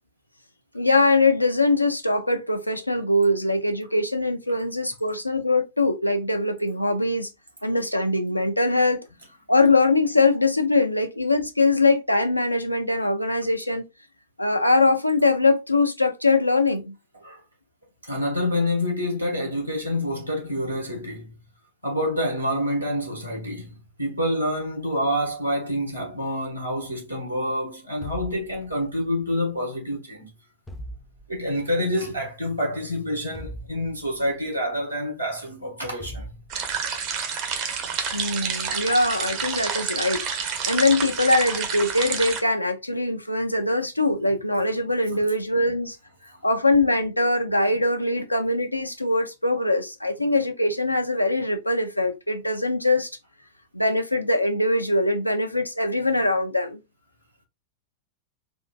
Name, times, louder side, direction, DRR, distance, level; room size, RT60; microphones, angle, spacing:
voice 1, 0.7-7.3 7.6-9.0 9.5-13.8 14.4-17.0 38.1-46.0 46.4-53.1 53.7-56.8, left 2 dB, 85° left, 0.5 m, -22 dB
voice 2, 18.0-21.3 21.8-30.3 31.3-36.3 37.3-37.4 45.1-45.2, equal, 85° right, 1.3 m, -27 dB
sound 1, 28.0-29.1 30.7-31.6 33.3-34.4 36.0-37.0, right 1 dB, 10° left, 0.4 m, -40 dB
sound 2, 36.5-42.4, right 6 dB, 45° right, 0.7 m, -29 dB
3.7 x 2.5 x 2.2 m
figure-of-eight pair, 90°, 0 cm